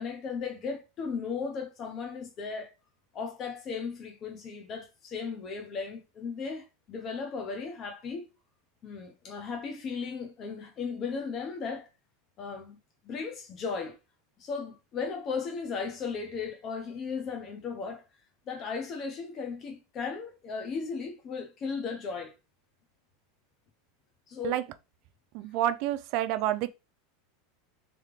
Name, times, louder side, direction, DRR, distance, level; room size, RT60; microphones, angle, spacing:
voice 1, 0.0-2.7 3.1-8.3 8.8-11.9 12.4-12.8 13.0-14.0 14.4-18.0 18.5-22.3 24.3-24.6, left 5 dB, 30° left, 1.0 m, -36 dB
voice 2, 25.3-26.7, right 13 dB, 50° right, 0.4 m, -28 dB
3.5 x 3.2 x 3.3 m
supercardioid pair, 150°, 0 cm